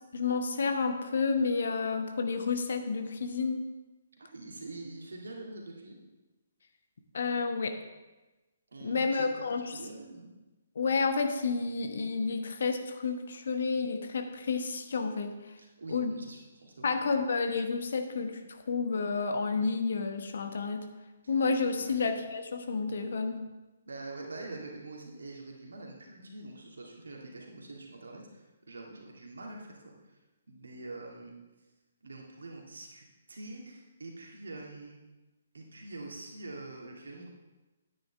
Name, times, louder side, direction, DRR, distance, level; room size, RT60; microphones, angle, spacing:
voice 1, 0.1-3.6 7.1-7.8 8.8-9.6 10.7-15.4 15.9-16.1 16.8-20.9 21.3-23.4, left 4 dB, 55° left, 6 dB, 1.0 m, -30 dB
voice 2, 4.2-6.0 8.7-9.3 9.7-10.3 15.6-16.9 21.8-22.0 23.9-30.2 30.5-31.3 32.0-35.0 35.5-37.3, right 2 dB, 65° right, -1 dB, 2.1 m, -45 dB
10.0 x 9.3 x 3.4 m, 1.1 s
figure-of-eight pair, 130°, 0 cm